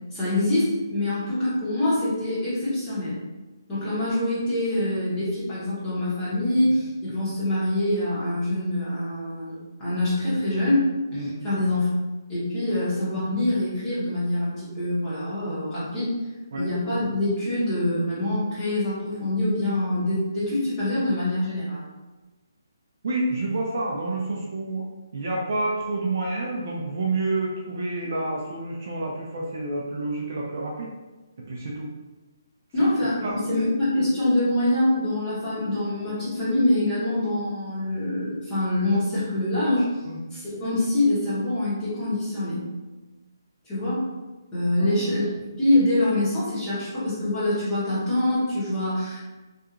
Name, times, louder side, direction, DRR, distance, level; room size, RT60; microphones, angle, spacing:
voice 1, 0.1-3.2 3.7-10.8 11.1-11.9 12.3-16.1 16.6-21.8 32.7-39.9 40.3-42.7 43.6-44.1 44.5-49.3, left 1 dB, 10° left, -11 dB, 0.8 m, -25 dB
voice 2, 23.0-24.8 25.1-30.9 31.4-31.9 33.2-33.3 40.1-40.2 44.8-45.1, right 2 dB, 40° right, -3 dB, 0.4 m, -29 dB
2.8 x 2.3 x 2.4 m, 1.2 s
hypercardioid pair, 175°, 2 cm